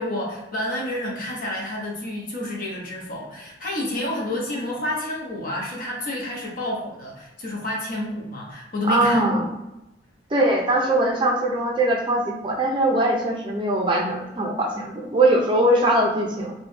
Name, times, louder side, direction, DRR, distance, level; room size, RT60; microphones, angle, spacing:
voice 1, 0.0-9.5, left 1 dB, 50° left, -2 dB, 0.7 m, -29 dB
voice 2, 8.9-9.5 10.3-16.5, right 1 dB, 25° right, -1 dB, 0.4 m, -21 dB
3.0 x 2.2 x 3.1 m, 0.94 s
head